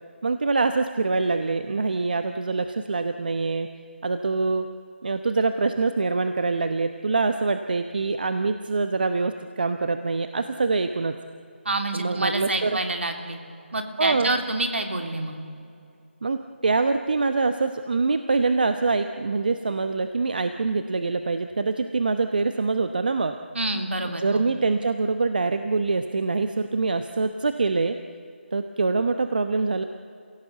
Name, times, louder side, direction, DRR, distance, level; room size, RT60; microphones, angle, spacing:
voice 1, 0.2-3.7 4.0-4.7 5.0-11.2 11.9-12.8 14.0-14.3 16.2-23.3 24.1-28.0 28.5-29.8, right 3 dB, 45° right, 8 dB, 1.0 m, -24 dB
voice 2, 11.6-13.4 13.7-15.3 23.5-24.4, right 2 dB, 70° right, 5 dB, 3.2 m, -27 dB
28.5 x 17.0 x 8.2 m, 2.6 s
figure-of-eight pair, 175°, 7 cm